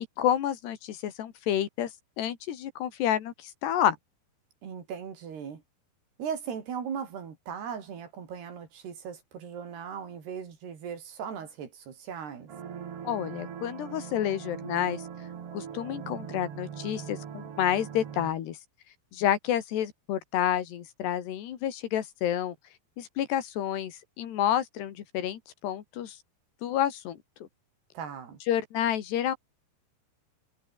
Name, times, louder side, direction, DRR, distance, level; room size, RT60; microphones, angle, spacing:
voice 1, 0.2-1.9 2.2-4.0 13.0-15.0 15.5-18.6 19.1-22.6 23.0-26.2 26.6-27.5 28.5-29.4, left 10 dB, 85° left, 4.3 m, -29 dB
voice 2, 4.6-5.6 6.2-12.5 27.9-28.4, right 7 dB, 75° right, 5.8 m, -38 dB
sound 1, 12.5-18.3, right 8 dB, 45° right, 2.3 m, -41 dB
omnidirectional pair, 4.7 m